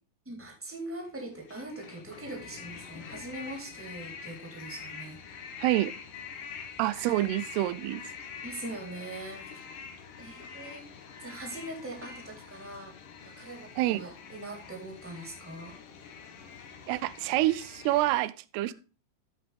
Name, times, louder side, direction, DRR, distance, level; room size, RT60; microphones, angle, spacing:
voice 1, 0.2-5.2 8.4-9.5 10.2-10.9 11.2-12.9 13.2-15.8, right 1 dB, 5° right, 2.7 m, -42 dB
sound 1, 1.0-18.2, left 6 dB, 60° left, 2.6 m, -45 dB
voice 2, 5.6-5.9 6.8-8.0 13.8-14.1 16.9-18.7, right 16 dB, 90° right, 2.6 m, -27 dB
13.5 x 5.9 x 3.4 m
omnidirectional pair, 4.6 m